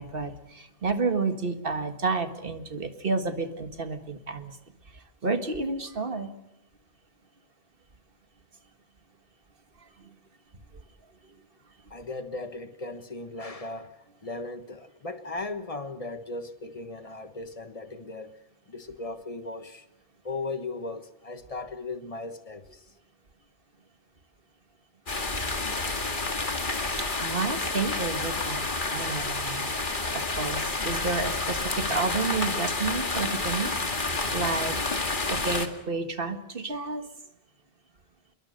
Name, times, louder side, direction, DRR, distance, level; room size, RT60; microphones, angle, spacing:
voice 1, 0.0-4.6 4.9-6.3 27.0-29.7 30.1-33.7 34.3-34.8 35.3-37.1, right 4 dB, 60° right, 1.8 m, -30 dB
voice 2, 11.9-18.3 18.7-19.9 20.2-22.8, left 3 dB, 35° left, 1.4 m, -37 dB
sound 1, 25.1-35.7, left 3 dB, 55° left, 2.2 m, -29 dB
27.5 x 22.0 x 6.6 m
omnidirectional pair, 1.1 m